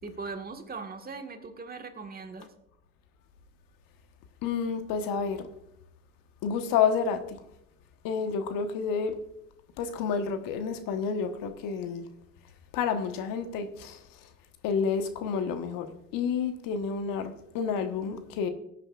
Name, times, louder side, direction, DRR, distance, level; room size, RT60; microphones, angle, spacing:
voice 1, 0.0-2.5, right 4 dB, 25° right, 1.6 m, -40 dB
voice 2, 4.4-5.5 6.4-7.4 8.0-9.2 9.8-12.1 12.7-14.0 14.6-18.5, left 6 dB, 60° left, 1.3 m, -29 dB
17.5 x 9.0 x 2.4 m
hypercardioid pair, 70°, 38 cm